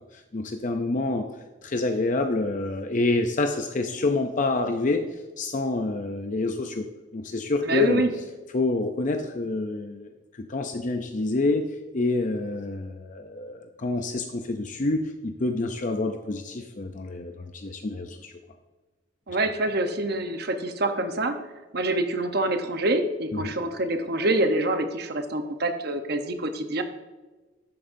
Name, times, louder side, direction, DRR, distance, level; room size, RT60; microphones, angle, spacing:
voice 1, 0.1-1.3 1.6-5.1 5.4-6.9 7.1-8.0 8.5-10.1 10.4-18.3 23.3-23.5, left 2 dB, 40° left, 6 dB, 0.5 m, -27 dB
voice 2, 7.6-8.1 19.3-21.4 21.7-26.8, right 2 dB, 55° right, 7 dB, 0.9 m, -26 dB
11.5 x 8.9 x 2.7 m, 1.2 s
head